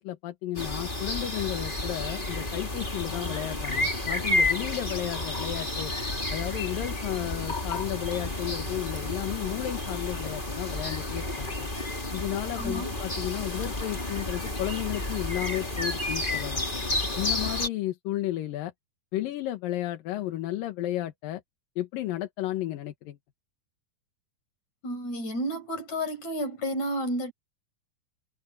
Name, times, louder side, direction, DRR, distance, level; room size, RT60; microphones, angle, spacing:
voice 1, 0.0-5.9 6.3-11.7 12.1-16.6 17.2-18.7 19.1-21.4 21.8-23.2, left 14 dB, 85° left, 3.0 m, -33 dB
sound 1, 0.5-17.7, left 2 dB, 15° left, 2.9 m, -31 dB
voice 2, 12.6-12.9 24.8-27.3, equal, 55° left, 6.7 m, -31 dB
omnidirectional pair, 3.9 m